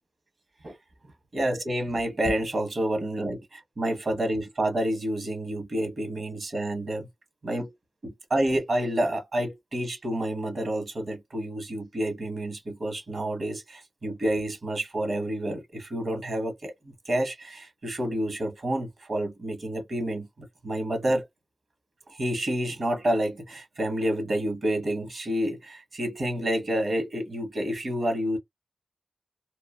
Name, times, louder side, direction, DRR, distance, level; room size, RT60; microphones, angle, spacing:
voice 1, 1.3-7.1 7.4-7.7 8.0-16.7 17.1-21.3 22.1-28.4, right 1 dB, 65° right, 1.1 m, -29 dB
3.0 x 2.3 x 2.4 m
cardioid pair, 55°, 0 cm